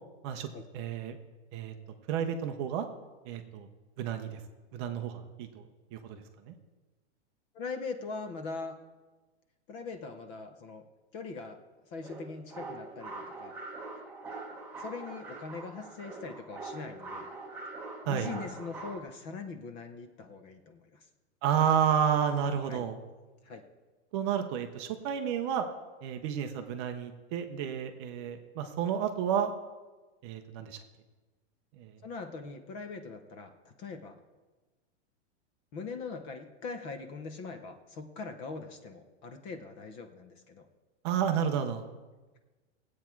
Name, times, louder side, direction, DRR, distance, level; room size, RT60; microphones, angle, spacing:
voice 1, 0.7-1.2 1.5-1.7 2.1-2.9 3.3-3.7 4.0-4.4 4.7-5.6 5.9-6.5 18.1-18.3 21.4-23.0 24.1-25.7 26.0-29.5 30.2-30.8 31.8-31.9 41.0-41.8, right 8 dB, 25° right, 5 dB, 0.6 m, -31 dB
voice 2, 7.5-8.7 9.7-10.8 11.1-11.6 11.9-13.5 14.8-17.3 18.0-21.1 22.7-22.8 23.4-23.6 32.0-34.2 35.7-40.7, left 4 dB, 20° left, 7 dB, 0.7 m, -41 dB
sound 1, 12.0-19.0, right 3 dB, 5° right, 1.0 m, -43 dB
18.5 x 8.5 x 4.5 m, 1.2 s
supercardioid pair, 170°, 35 cm